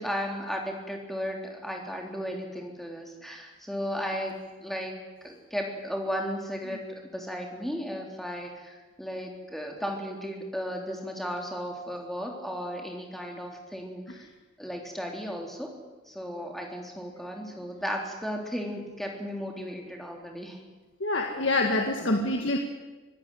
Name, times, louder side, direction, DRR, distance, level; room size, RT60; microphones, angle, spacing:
voice 1, 0.0-14.3 14.6-15.7 16.1-20.6, equal, ahead, 1 dB, 3.5 m, -35 dB
voice 2, 21.0-22.6, left 2 dB, 60° left, 3 dB, 1.9 m, -26 dB
25.5 x 17.0 x 9.3 m, 1.2 s
head